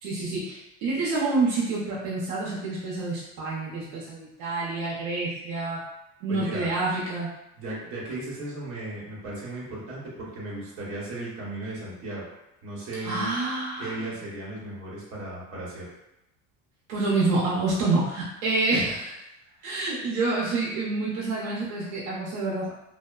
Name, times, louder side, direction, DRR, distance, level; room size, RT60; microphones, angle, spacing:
voice 1, 0.0-5.8 6.2-7.3 13.0-14.0 16.9-19.1 19.6-22.7, right 3 dB, 75° right, -6 dB, 0.6 m, -27 dB
voice 2, 6.3-6.7 7.6-12.2 12.6-13.3 13.8-15.9 18.7-18.8 19.6-19.7, right 2 dB, 45° right, -6 dB, 0.9 m, -36 dB
2.8 x 2.0 x 2.3 m, 0.87 s
cardioid pair, 170°, 31 cm